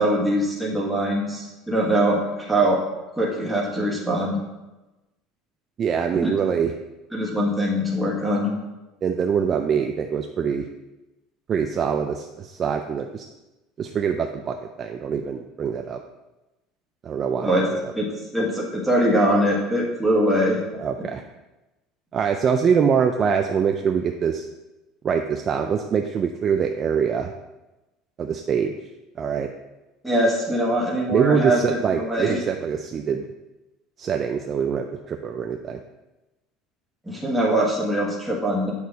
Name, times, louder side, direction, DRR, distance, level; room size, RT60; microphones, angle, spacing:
voice 1, 0.0-2.8 3.2-4.4 6.2-6.4 7.1-8.5 17.4-17.6 17.9-20.6 30.0-32.4 37.1-38.7, right 1 dB, ahead, -4 dB, 1.4 m, -22 dB
voice 2, 5.8-6.7 9.0-10.7 11.5-13.2 13.8-16.0 17.0-17.9 20.8-21.2 22.1-24.5 25.0-27.3 28.2-28.7 29.2-29.5 31.1-33.2 34.0-35.8, right 7 dB, 25° right, 5 dB, 0.3 m, -24 dB
8.5 x 6.4 x 4.0 m, 1.0 s
cardioid pair, 180°, 0 cm